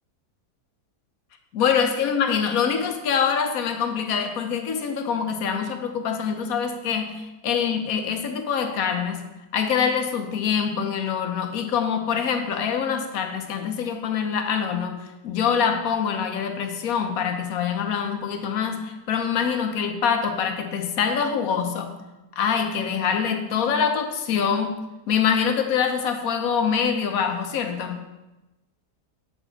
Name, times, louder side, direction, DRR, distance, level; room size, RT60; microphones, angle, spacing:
voice 1, 1.5-9.3 9.5-22.0 22.3-24.8 25.1-28.0, left 7 dB, 65° left, 6 dB, 1.1 m, -25 dB
7.9 x 4.3 x 4.5 m, 1.0 s
omnidirectional pair, 1.8 m